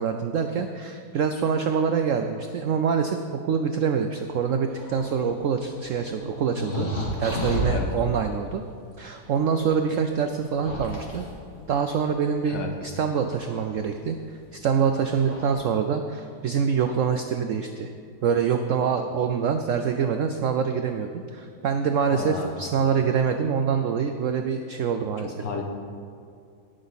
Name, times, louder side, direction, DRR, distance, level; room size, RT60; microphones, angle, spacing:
voice 1, 0.0-6.9 7.2-8.6 9.0-11.3 11.7-14.2 14.5-17.9 18.2-25.6, right 6 dB, 90° right, 6 dB, 0.6 m, -25 dB
sound 1, 4.7-7.9 9.2-9.3 10.3-12.2 13.3-13.8 14.8-14.9 15.2-15.5, equal, 40° left, 2.1 m, -32 dB
voice 2, 7.6-7.9 12.5-12.7 22.1-22.7 25.2-25.6, left 5 dB, 80° left, 3 dB, 1.8 m, -33 dB
17.5 x 6.3 x 4.0 m, 2.3 s
omnidirectional pair, 1.9 m